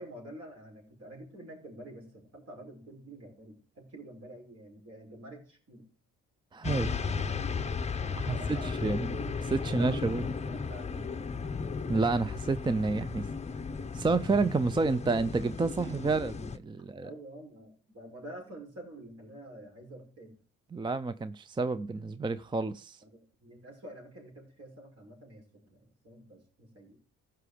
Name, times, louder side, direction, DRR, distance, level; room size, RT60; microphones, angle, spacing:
voice 1, 0.0-5.9 8.0-9.0 9.6-11.2 17.0-20.4 23.0-27.0, right 1 dB, 55° right, 5.6 m, -48 dB
voice 2, 6.5-7.0 8.2-10.2 11.9-13.3 13.9-17.1 20.7-23.0, right 3 dB, 15° right, 0.4 m, -30 dB
sound 1, 6.6-16.6, left 5 dB, 20° left, 0.7 m, -35 dB
15.0 x 5.8 x 5.0 m
cardioid pair, 90°, 30 cm